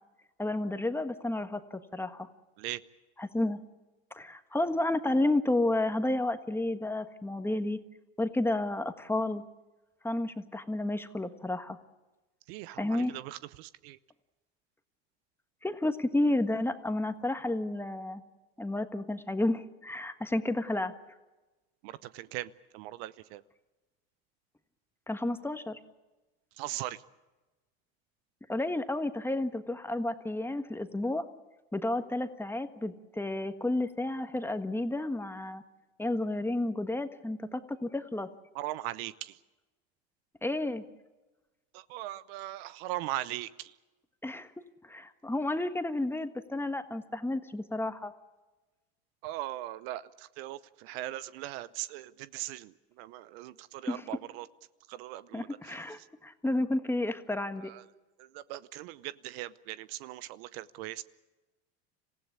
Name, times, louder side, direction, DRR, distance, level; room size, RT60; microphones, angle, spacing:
voice 1, 0.4-2.3 3.2-3.6 4.1-7.8 8.2-9.4 10.0-11.8 12.8-13.2 15.6-18.2 18.6-20.9 25.1-25.8 28.5-31.3 31.7-35.6 36.0-38.3 40.4-40.8 44.2-44.5 44.8-48.1 53.9-54.0 55.3-57.7, left 2 dB, 5° left, 9 dB, 1.5 m, -31 dB
voice 2, 12.5-14.0 21.8-23.4 26.6-27.0 38.5-39.4 41.7-43.7 49.2-54.5 54.9-55.7 57.6-57.8 58.2-61.0, right 15 dB, 70° right, 17 dB, 0.8 m, -39 dB
26.5 x 16.0 x 8.3 m, 1.1 s
supercardioid pair, 95°, 31 cm